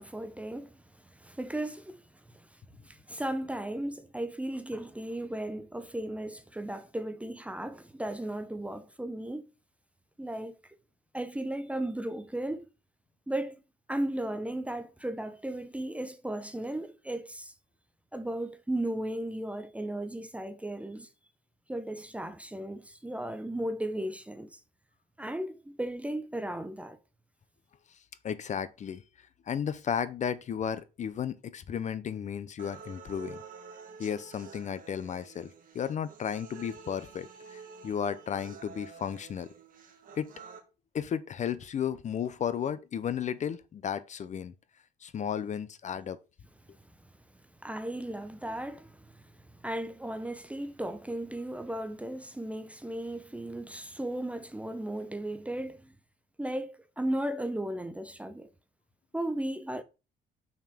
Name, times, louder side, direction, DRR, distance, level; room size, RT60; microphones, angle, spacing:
voice 1, 0.0-9.4 10.2-10.5 11.1-12.7 13.3-13.6 13.9-17.5 18.1-21.1 21.7-24.6 25.2-27.0 47.6-56.0 56.4-58.5 59.1-59.8, right 1 dB, 5° right, 0.6 m, -36 dB
voice 2, 28.2-29.0 29.5-33.4 34.0-39.5 40.2-40.3 40.9-44.5 45.0-46.2, left 8 dB, 40° left, 0.6 m, -34 dB
sound 1, 32.6-40.6, right 5 dB, 45° right, 1.8 m, -49 dB
6.5 x 5.9 x 3.5 m
cardioid pair, 125°, 19 cm